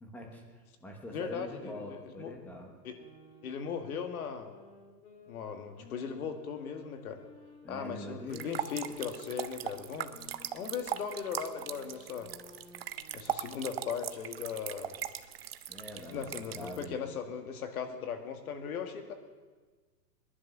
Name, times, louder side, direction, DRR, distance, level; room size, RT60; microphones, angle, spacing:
voice 1, 0.0-2.7 7.6-8.5 15.7-17.0, equal, 5° left, 2 dB, 0.9 m, -44 dB
voice 2, 1.1-2.3 2.8-3.0 3.4-4.5 5.3-7.2 7.7-10.1 10.5-12.3 13.1-15.0 16.1-19.1, left 7 dB, 60° left, 6 dB, 2.1 m, -38 dB
sound 1, 2.8-8.2 8.7-13.5, left 3 dB, 35° left, 2.7 m, -56 dB
sound 2, 8.3-16.8, right 10 dB, 40° right, 0.5 m, -39 dB
20.0 x 11.0 x 6.1 m, 1.4 s
hypercardioid pair, 165°, 50 cm